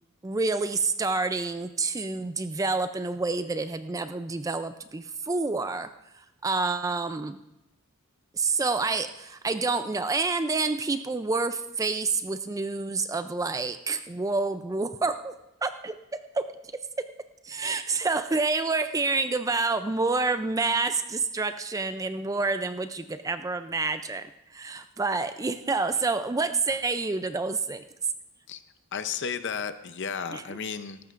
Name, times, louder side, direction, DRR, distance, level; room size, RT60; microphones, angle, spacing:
voice 1, 0.2-7.4 8.3-15.3 15.6-16.5 17.4-27.8 30.3-30.6, right 3 dB, 15° right, 10 dB, 0.3 m, -28 dB
voice 2, 28.9-31.0, left 6 dB, 55° left, 11 dB, 0.6 m, -33 dB
17.5 x 14.5 x 2.5 m, 0.88 s
head